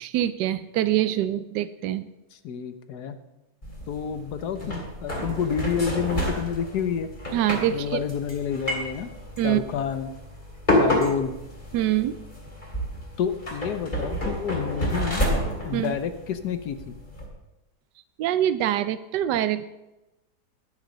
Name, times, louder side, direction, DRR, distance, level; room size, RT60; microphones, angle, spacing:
voice 1, 0.0-2.1 7.3-8.0 9.4-9.6 11.7-12.2 15.7-16.0 18.2-19.7, right 12 dB, 90° right, 13 dB, 1.2 m, -24 dB
voice 2, 2.3-3.2 3.9-7.1 7.7-9.1 9.4-10.1 10.8-11.4 13.2-15.2 15.6-17.0, left 7 dB, 70° left, 10 dB, 1.4 m, -29 dB
sound 1, 3.6-17.3, equal, 25° left, 3.2 m, -30 dB
10.5 x 9.3 x 6.5 m, 0.96 s
omnidirectional pair, 1.8 m